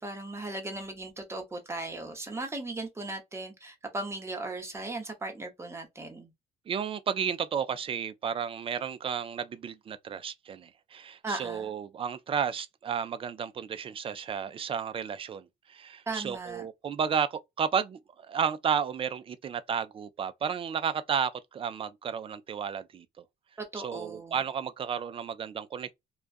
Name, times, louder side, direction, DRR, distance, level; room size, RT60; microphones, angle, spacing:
voice 1, 0.0-6.3 11.2-11.7 16.1-16.6 23.6-24.4, right 2 dB, 15° right, 0.9 m, -37 dB
voice 2, 6.7-23.2 23.8-25.9, right 7 dB, 35° right, 0.4 m, -32 dB
2.3 x 2.2 x 2.4 m
cardioid pair, 110°, 17 cm